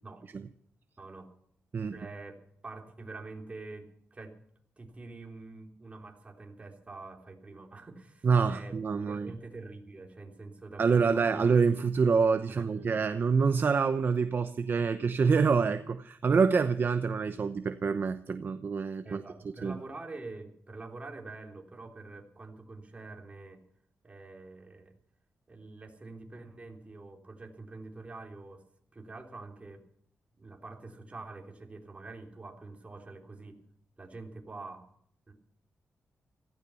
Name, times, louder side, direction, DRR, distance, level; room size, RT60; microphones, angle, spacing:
voice 1, 1.0-1.3 1.9-2.3 2.6-4.3 4.8-11.4 12.4-12.9 19.0-23.6 24.0-25.0 25.5-28.6 28.9-29.8 30.4-33.6 34.0-34.8 35.3-35.4, right 3 dB, 25° right, 3 dB, 3.3 m, -46 dB
voice 2, 8.2-9.3 10.8-19.2 19.6-19.8, right 5 dB, 45° right, 10 dB, 0.9 m, -26 dB
16.5 x 15.0 x 5.7 m, 0.67 s
wide cardioid pair, 125°, 5 cm